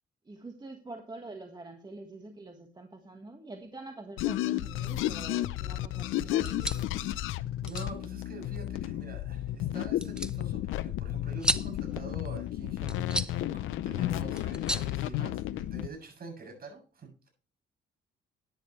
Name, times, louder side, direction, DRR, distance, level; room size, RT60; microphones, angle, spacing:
voice 1, 0.2-7.2, right 2 dB, 20° right, 4 dB, 1.5 m, -46 dB
sound 1, 4.2-15.9, left 13 dB, 90° left, 0.6 m, -32 dB
sound 2, 6.3-15.8, right 1 dB, 5° right, 0.7 m, -38 dB
voice 2, 7.6-17.3, right 3 dB, 50° right, 2 dB, 7.5 m, -45 dB
13.5 x 10.5 x 3.2 m, 0.36 s
cardioid pair, 90°, 20 cm